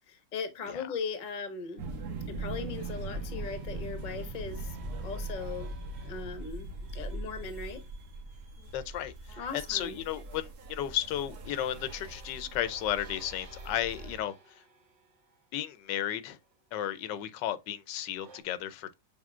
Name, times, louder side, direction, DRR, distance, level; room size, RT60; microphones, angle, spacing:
voice 1, 0.1-1.9 2.3-5.7 6.0-7.8 9.4-10.0, left 5 dB, 35° left, 0.8 m, -39 dB
sound 1, 1.7-8.4 9.9-17.5 18.2-18.4, right 4 dB, 50° right, 1.0 m, -57 dB
sound 2, 1.8-14.2, right 2 dB, 65° right, 1.6 m, -41 dB
voice 2, 8.7-14.3 15.5-16.4 16.7-18.9, left 11 dB, 85° left, 1.3 m, -34 dB
6.5 x 3.6 x 2.3 m
omnidirectional pair, 1.9 m